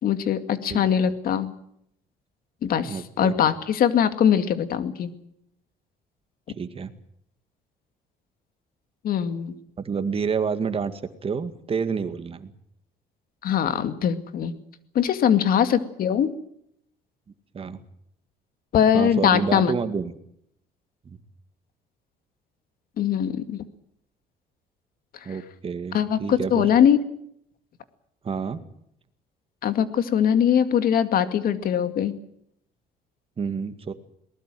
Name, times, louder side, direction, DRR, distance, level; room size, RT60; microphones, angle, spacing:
voice 1, 0.0-1.5 2.6-5.1 9.0-9.5 13.4-14.5 14.9-16.3 18.7-19.7 23.0-23.6 25.9-27.0 29.6-32.1, left 9 dB, 60° left, 10 dB, 2.2 m, -21 dB
voice 2, 2.9-3.3 6.6-6.9 9.8-12.5 17.5-17.8 18.9-20.2 21.1-21.2 25.3-26.7 28.2-28.6 33.4-33.9, right 5 dB, 35° right, 10 dB, 2.1 m, -29 dB
22.5 x 19.5 x 7.8 m, 0.73 s
cardioid pair, 110°, 17 cm